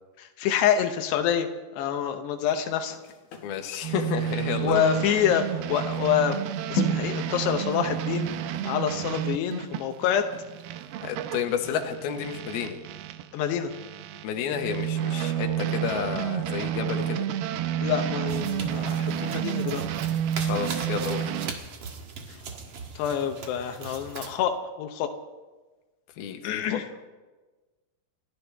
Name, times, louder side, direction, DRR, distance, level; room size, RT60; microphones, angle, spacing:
voice 1, 0.2-1.5 1.7-3.0 4.6-6.4 6.7-8.3 8.7-10.3 13.3-13.7 17.8-19.8 23.0-25.1 26.4-26.8, left 9 dB, 90° left, 5 dB, 3.1 m, -26 dB
sound 1, 2.4-10.9 11.3-11.5, left 1 dB, 55° left, 2.9 m, -37 dB
voice 2, 3.4-4.9 11.0-12.8 14.2-17.3 20.4-21.4 26.2-26.8, left 8 dB, 70° left, 4 dB, 3.1 m, -31 dB
sound 2, 3.8-13.3 13.7-21.5, right 10 dB, 80° right, 2.6 m, -30 dB
sound 3, 18.3-24.4, right 4 dB, 50° right, 2.0 m, -40 dB
30.0 x 13.5 x 3.5 m, 1.2 s
omnidirectional pair, 4.7 m